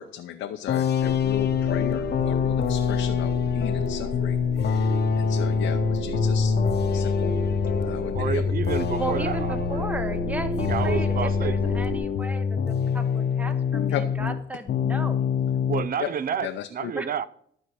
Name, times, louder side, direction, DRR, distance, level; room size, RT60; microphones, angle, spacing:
voice 1, 0.0-6.5 6.9-7.3 7.8-8.4 13.9-14.0 16.0-16.1 16.4-16.7, left 11 dB, 85° left, 0.7 m, -35 dB
sound 1, 0.7-14.4 14.7-15.9, left 6 dB, 55° left, 0.9 m, -25 dB
sound 2, 1.0-12.0, right 1 dB, 80° right, 2.9 m, -33 dB
voice 2, 8.1-9.8 10.7-11.6 15.7-17.3, right 7 dB, 50° right, 0.6 m, -30 dB
voice 3, 9.0-15.2 16.9-17.1, right 2 dB, 5° right, 1.0 m, -35 dB
12.5 x 4.5 x 7.8 m
cardioid pair, 90°, 20 cm